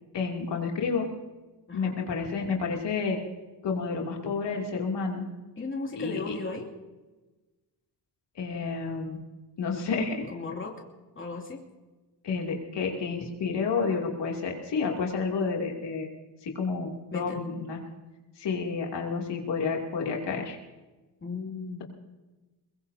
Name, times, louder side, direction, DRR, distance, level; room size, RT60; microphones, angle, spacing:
voice 1, 0.1-1.1 1.7-3.2 3.6-5.3 6.0-6.4 8.3-9.2 9.6-10.3 12.2-16.1 16.4-17.8 18.4-20.6, left 5 dB, 75° left, 0 dB, 2.9 m, -30 dB
voice 2, 1.7-2.0 5.6-6.7 10.3-10.7 11.2-11.6 17.1-17.4 21.2-21.8, left 3 dB, 30° left, -1 dB, 2.8 m, -36 dB
22.5 x 22.0 x 2.8 m, 1.1 s
cardioid pair, 120°, 42 cm